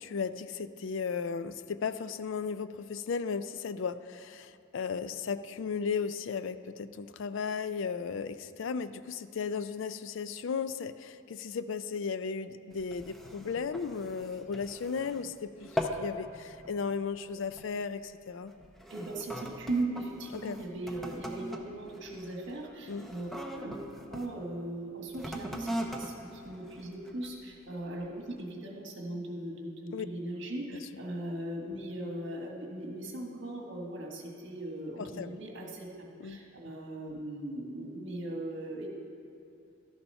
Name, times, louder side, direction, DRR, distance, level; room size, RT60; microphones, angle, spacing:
voice 1, 0.0-18.5 20.3-20.6 22.9-23.1 29.9-30.1 35.0-35.7 36.2-36.4, left 5 dB, 60° left, 13 dB, 0.4 m, -35 dB
sound 1, 12.7-15.3 15.6-16.1 16.5-16.8 17.5-17.8 18.5-24.3 25.1-27.4 28.0-28.1, equal, ahead, 0.6 m, -40 dB
voice 2, 18.9-23.8 24.1-35.9 36.2-38.9, right 1 dB, 60° right, 0 dB, 1.5 m, -38 dB
13.0 x 7.0 x 5.5 m, 2.7 s
head